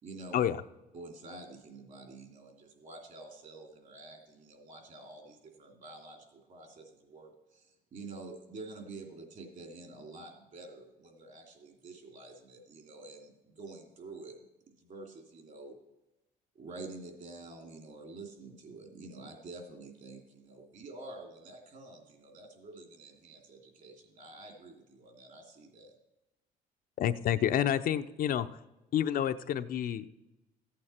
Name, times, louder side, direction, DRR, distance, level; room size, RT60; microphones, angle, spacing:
voice 1, 0.0-0.4 0.9-14.4 14.8-15.8 16.5-25.9, right 2 dB, 50° right, 3 dB, 2.9 m, -48 dB
voice 2, 27.0-28.6 28.9-30.1, left 10 dB, 60° left, 10 dB, 0.6 m, -29 dB
14.5 x 8.7 x 4.4 m, 0.98 s
cardioid pair, 110°, 17 cm